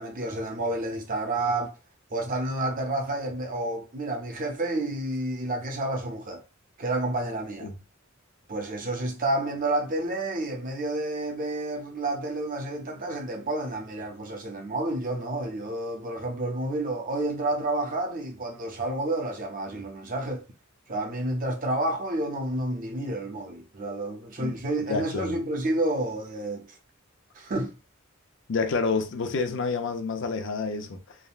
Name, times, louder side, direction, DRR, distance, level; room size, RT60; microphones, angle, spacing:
voice 1, 0.0-1.7 2.1-6.4 6.8-7.7 8.5-20.4 20.9-26.7 27.4-27.7, right 2 dB, 40° right, 0.6 m, -30 dB
voice 2, 24.9-25.4 28.5-31.2, left 4 dB, 60° left, 0.5 m, -29 dB
3.5 x 2.1 x 2.3 m
head